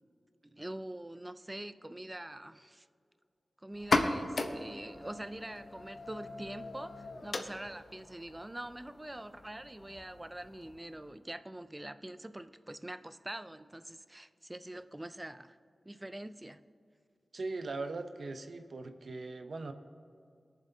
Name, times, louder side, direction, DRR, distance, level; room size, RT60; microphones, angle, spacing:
voice 1, 0.5-2.9 3.6-15.6 15.8-16.6, right 1 dB, 20° right, 12 dB, 0.4 m, -44 dB
sound 1, 3.7-11.2, left 2 dB, 65° left, 0.8 m, -37 dB
voice 2, 17.3-19.7, right 3 dB, 70° right, 8 dB, 0.7 m, -40 dB
22.0 x 7.3 x 2.8 m, 2.4 s
wide cardioid pair, 85°, 0 cm